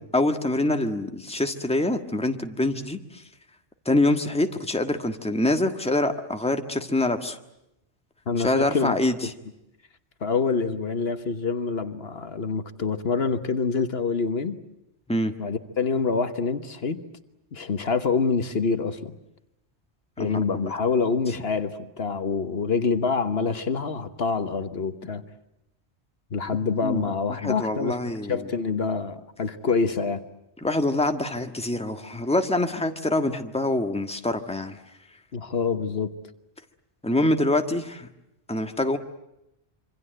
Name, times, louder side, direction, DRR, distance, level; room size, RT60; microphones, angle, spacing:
voice 1, 0.1-3.0 3.8-7.4 8.4-9.1 15.1-15.3 20.2-20.7 26.8-27.1 27.4-28.4 30.6-34.8 37.0-38.1 38.5-39.0, left 1 dB, 5° left, 6 dB, 1.5 m, -25 dB
voice 2, 8.3-8.9 9.2-9.3 10.2-14.6 15.4-17.0 17.5-19.1 20.2-25.2 26.3-28.0 28.3-30.2 35.3-36.1, left 5 dB, 65° left, 10 dB, 1.5 m, -26 dB
26.5 x 25.5 x 7.8 m, 0.87 s
omnidirectional pair, 1.1 m